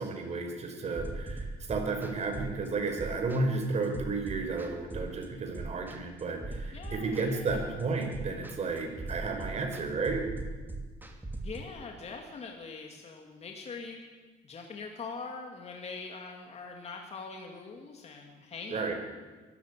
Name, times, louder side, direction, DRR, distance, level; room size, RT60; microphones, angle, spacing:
voice 1, 0.0-10.3 18.7-18.9, right 3 dB, 40° right, 3 dB, 5.2 m, -32 dB
sound 1, 0.9-11.6, right 2 dB, 10° right, 3.0 m, -40 dB
voice 2, 6.7-7.7 11.4-14.0 14.4-18.9, left 4 dB, 40° left, 2 dB, 2.8 m, -43 dB
23.0 x 14.0 x 8.5 m, 1.3 s
cardioid pair, 110°, 17 cm